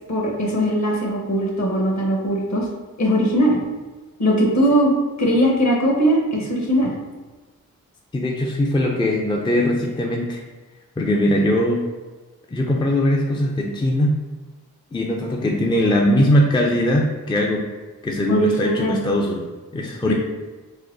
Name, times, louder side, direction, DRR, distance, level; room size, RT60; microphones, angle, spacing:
voice 1, 0.1-2.7 3.0-3.6 4.2-4.9 5.2-6.9 18.3-19.0 20.1-20.2, equal, 50° left, -1 dB, 1.1 m, -20 dB
voice 2, 8.1-10.4 11.0-11.8 12.5-14.2 14.9-17.7 18.0-19.4 19.7-20.1, left 1 dB, 15° left, -1 dB, 0.5 m, -20 dB
4.1 x 2.3 x 2.6 m, 1.3 s
cardioid pair, 40°, 36 cm